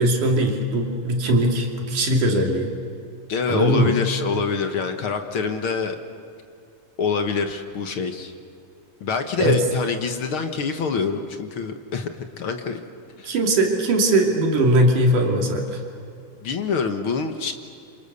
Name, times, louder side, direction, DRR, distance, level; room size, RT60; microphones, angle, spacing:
voice 1, 0.0-2.7 3.5-3.9 9.4-9.6 13.2-15.8, right 1 dB, 80° right, 1 dB, 4.3 m, -20 dB
voice 2, 3.3-6.0 7.0-8.3 9.0-12.8 13.2-13.3 16.4-17.5, left 5 dB, 55° left, 6 dB, 1.7 m, -26 dB
28.5 x 27.0 x 6.9 m, 2.5 s
omnidirectional pair, 3.6 m